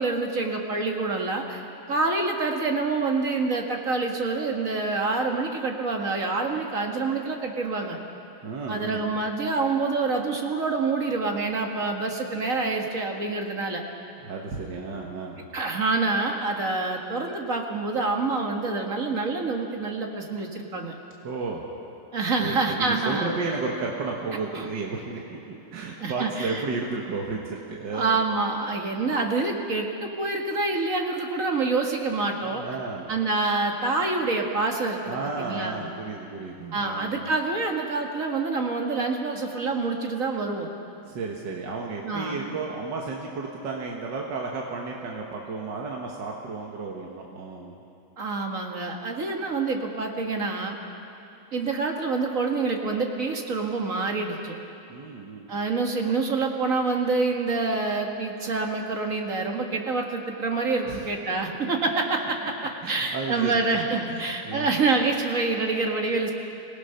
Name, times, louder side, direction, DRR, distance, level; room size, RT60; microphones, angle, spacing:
voice 1, 0.0-1.6 1.9-8.0 8.7-13.8 15.5-20.9 22.1-23.3 24.5-24.7 26.0-26.6 27.9-32.6 33.1-35.9 36.7-40.7 42.0-42.5 48.2-50.8 51.5-54.6 55.5-66.3, right 3 dB, 50° right, 2 dB, 2.0 m, -27 dB
voice 2, 8.4-9.0 14.2-15.5 21.2-21.7 22.4-28.2 32.6-33.1 35.1-37.1 41.1-47.8 54.9-55.5 60.8-61.1 62.6-63.6 64.1-64.7, right 4 dB, 80° right, -1 dB, 2.1 m, -33 dB
26.0 x 17.5 x 5.7 m, 2.7 s
omnidirectional pair, 1.9 m